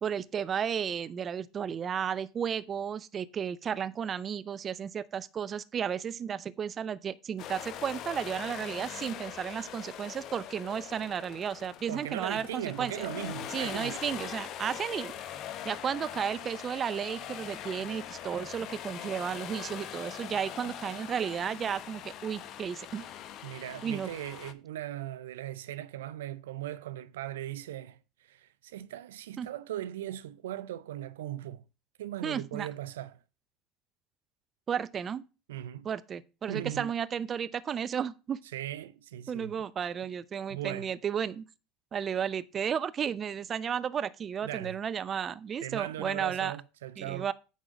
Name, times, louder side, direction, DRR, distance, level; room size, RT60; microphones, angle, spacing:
voice 1, 0.0-13.1 13.5-15.2 15.6-23.1 23.8-24.1 29.4-29.5 32.2-32.7 34.7-35.2 35.8-38.4 39.3-41.4 41.9-46.5 47.0-47.3, right 8 dB, 35° right, 0.6 m, -33 dB
sound 1, 7.4-24.5, left 10 dB, 55° left, 0.8 m, -42 dB
voice 2, 11.9-14.0 20.7-20.8 23.4-31.6 32.0-33.2 35.5-35.9 36.5-36.9 38.5-39.5 40.5-40.9 44.4-44.8 45.6-47.3, right 12 dB, 85° right, 0.4 m, -39 dB
9.4 x 3.7 x 6.3 m
hypercardioid pair, 90°, 0 cm